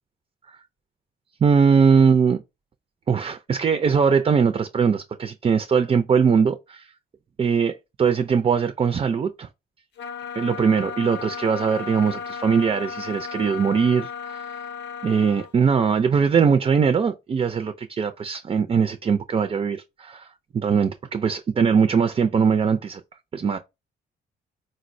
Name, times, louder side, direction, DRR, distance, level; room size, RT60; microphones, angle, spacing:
voice 1, 1.4-2.4 3.1-6.9 7.4-9.5 10.4-14.6 15.0-20.3 20.5-23.0 23.3-23.6, right 6 dB, 30° right, 0.3 m, -21 dB
sound 1, 10.0-15.5, left 6 dB, 65° left, 0.6 m, -35 dB
4.0 x 2.0 x 2.5 m
cardioid pair, 90°, 20 cm